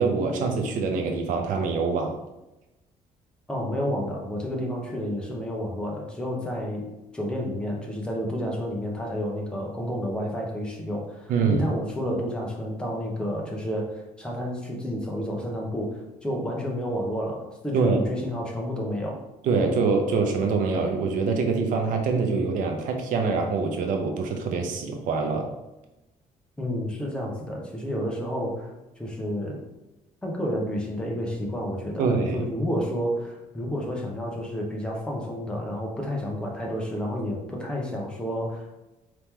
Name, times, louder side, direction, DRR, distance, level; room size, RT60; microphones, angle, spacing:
voice 1, 0.0-2.2 11.3-11.7 17.7-18.0 19.4-25.5 32.0-32.4, right 4 dB, 65° right, 3 dB, 0.6 m, -24 dB
voice 2, 3.5-6.9 7.1-19.2 26.6-29.6 30.2-38.8, equal, 5° left, -2 dB, 0.7 m, -30 dB
4.5 x 2.9 x 3.6 m, 0.98 s
cardioid pair, 175°, 14 cm